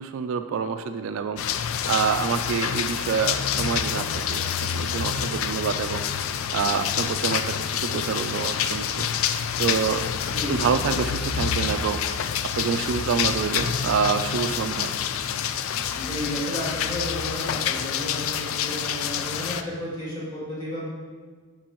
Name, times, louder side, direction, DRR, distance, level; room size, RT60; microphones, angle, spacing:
voice 1, 0.0-1.4 1.9-6.0 6.5-9.1 9.6-10.1 10.5-12.0 12.6-15.0, right 6 dB, 65° right, 8 dB, 0.3 m, -27 dB
sound 1, 1.4-19.6, left 8 dB, 70° left, 0.3 m, -27 dB
voice 2, 10.2-10.7 15.9-20.9, left 1 dB, 20° left, -8 dB, 2.3 m, -32 dB
11.0 x 4.6 x 3.0 m, 1.5 s
head